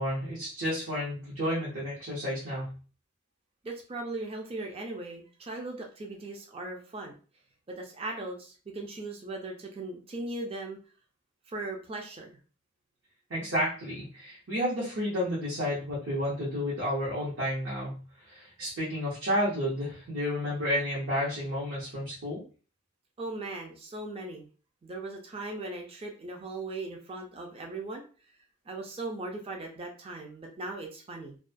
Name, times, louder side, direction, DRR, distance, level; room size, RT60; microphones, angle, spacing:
voice 1, 0.0-2.7 13.3-18.0 18.2-22.4, equal, 70° right, -7 dB, 0.9 m, -31 dB
voice 2, 3.6-7.1 7.7-10.8 11.5-12.4 23.2-24.5 24.8-28.0 28.7-31.4, right 2 dB, 30° right, 2 dB, 0.4 m, -38 dB
2.3 x 2.2 x 2.4 m, 0.38 s
head